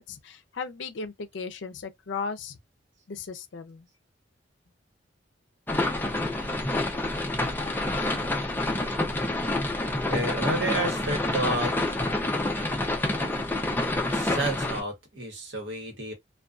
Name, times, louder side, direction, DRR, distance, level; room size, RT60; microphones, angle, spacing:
voice 1, 0.0-2.6 3.1-3.9, left 5 dB, 70° left, 0.5 m, -36 dB
sound 1, 5.7-14.8, left 2 dB, 10° left, 0.5 m, -28 dB
voice 2, 10.1-11.9 14.1-16.1, right 1 dB, 70° right, 1.1 m, -30 dB
2.5 x 2.3 x 2.3 m
head